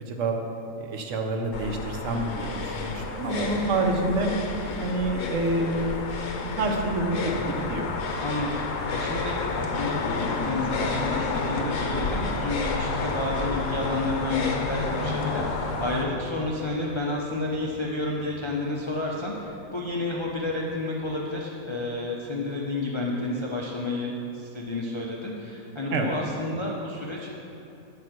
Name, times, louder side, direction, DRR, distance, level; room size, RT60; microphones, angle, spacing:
voice 1, 0.1-0.4 0.8-4.3 4.8-5.9 6.4-7.9 25.9-26.1, right 2 dB, 65° right, 2 dB, 1.0 m, -27 dB
sound 1, 1.5-16.0, left 4 dB, 65° left, 1.1 m, -30 dB
sound 2, 2.4-21.1, left 2 dB, 90° right, 1.6 m, -43 dB
voice 2, 8.2-27.3, left 2 dB, 50° left, -3 dB, 0.3 m, -31 dB
7.2 x 5.2 x 6.0 m, 2.8 s
omnidirectional pair, 1.5 m